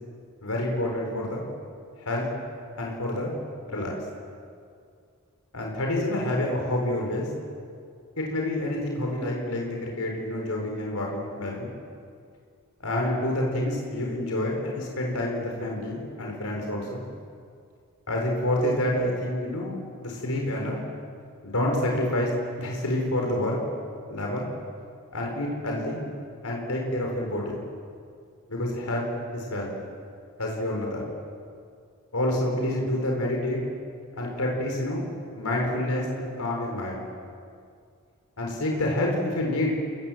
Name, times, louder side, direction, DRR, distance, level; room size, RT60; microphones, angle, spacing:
voice 1, 0.4-1.4 2.0-2.3 2.8-3.3 3.7-3.9 5.5-7.3 8.2-11.7 12.8-17.0 18.1-20.8 21.4-22.3 22.6-23.6 24.1-24.5 25.1-26.0 26.4-27.6 28.5-29.7 30.4-31.0 32.1-33.6 34.2-35.0 35.3-37.0 38.4-39.7, left 1 dB, 85° left, 0 dB, 4.7 m, -28 dB
29.5 x 18.5 x 7.8 m, 2.3 s
head